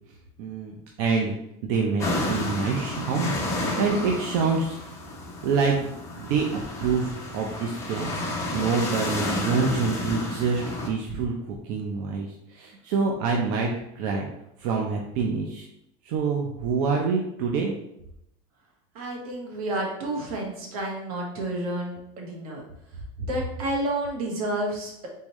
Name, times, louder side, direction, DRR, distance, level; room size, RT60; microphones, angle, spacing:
voice 1, 0.4-1.3 1.6-5.0 5.4-5.9 6.2-8.2 8.5-13.7 14.0-14.3 14.6-15.7 16.0-17.7, right 5 dB, 65° right, 0 dB, 0.7 m, -26 dB
sound 1, 2.0-10.9, left 1 dB, 15° left, 1.0 m, -31 dB
voice 2, 18.9-22.6 23.2-25.1, right 1 dB, 85° right, -1 dB, 1.5 m, -30 dB
4.0 x 3.8 x 3.1 m, 0.81 s
supercardioid pair, 150°, 18 cm